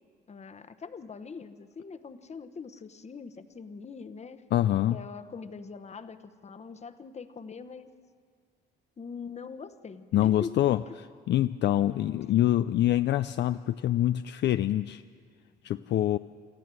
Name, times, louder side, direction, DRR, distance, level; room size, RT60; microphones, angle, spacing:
voice 1, 0.3-4.4 4.9-7.9 9.0-11.0, left 5 dB, 35° left, 10 dB, 1.0 m, -42 dB
voice 2, 4.5-5.0 10.1-10.8 11.3-15.0 15.6-16.2, left 13 dB, 60° left, 11 dB, 0.4 m, -25 dB
26.5 x 14.0 x 7.6 m, 2.1 s
cardioid pair, 90°, 20 cm